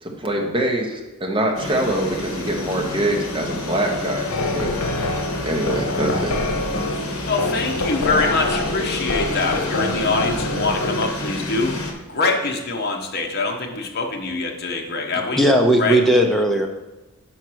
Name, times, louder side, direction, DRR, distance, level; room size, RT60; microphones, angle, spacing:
voice 1, 0.0-4.7 5.4-6.3, right 1 dB, 25° right, 0 dB, 1.0 m, -24 dB
sound 1, 1.5-11.9, left 2 dB, 65° left, 1.1 m, -29 dB
sound 2, 4.3-11.1, left 2 dB, 90° left, 0.8 m, -26 dB
voice 2, 7.2-11.7 12.1-15.4 15.8-16.0, left 3 dB, 45° left, 1 dB, 1.0 m, -24 dB
voice 3, 15.3-16.7, right 1 dB, ahead, 2 dB, 0.6 m, -16 dB
5.6 x 4.6 x 6.2 m, 1.1 s
head